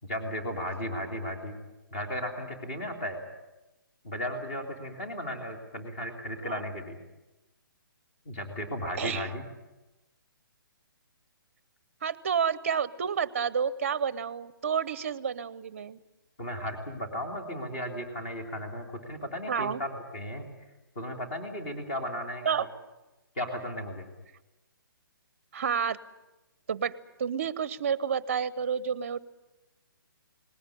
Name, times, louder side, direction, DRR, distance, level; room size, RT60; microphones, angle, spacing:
voice 1, 0.0-1.6 1.9-3.2 4.0-7.0 8.2-9.4 16.4-20.5 20.9-22.7 23.3-24.1, equal, 30° left, 4 dB, 3.3 m, -35 dB
voice 2, 9.0-9.3 12.0-16.0 19.5-19.8 22.5-22.7 25.5-26.0 26.7-26.9 27.2-29.2, right 7 dB, 35° right, 19 dB, 0.8 m, -30 dB
20.0 x 17.5 x 10.0 m, 1.0 s
hypercardioid pair, 175°, 12 cm